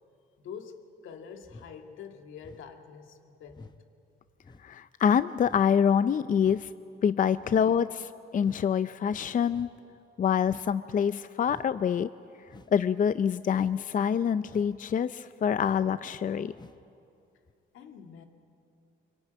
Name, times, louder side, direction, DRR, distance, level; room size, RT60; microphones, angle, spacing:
voice 1, 0.4-3.7 17.7-18.2, left 6 dB, 85° left, 4 dB, 2.1 m, -46 dB
sound 1, 1.4-1.8 2.4-2.7 3.5-3.8 4.4-4.7 5.4-5.7 6.4-6.7 7.4-7.7 8.4-8.7 9.5-9.7 10.4-10.8 11.4-11.7 12.5-12.8 13.5-13.8 14.4-14.8 15.5-15.9 16.5-16.8 17.5-17.6, left 3 dB, 20° left, 1.0 m, -51 dB
voice 2, 4.6-6.7 7.0-9.7 10.2-12.1 12.7-16.5, left 7 dB, 40° left, 13 dB, 0.5 m, -26 dB
25.0 x 23.0 x 9.3 m, 2.6 s
cardioid pair, 90°, 20 cm